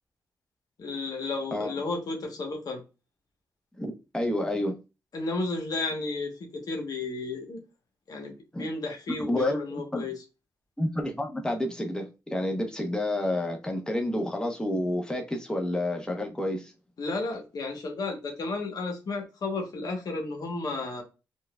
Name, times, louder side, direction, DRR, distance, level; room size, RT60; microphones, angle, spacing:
voice 1, 0.8-2.8 5.1-7.6 8.1-10.1 17.0-21.0, left 3 dB, 65° left, 1.1 m, -33 dB
voice 2, 3.8-4.8 8.5-8.6 9.3-10.0 10.8-16.7, left 1 dB, 10° left, 1.0 m, -29 dB
4.5 x 2.5 x 2.3 m
cardioid pair, 50°, 7 cm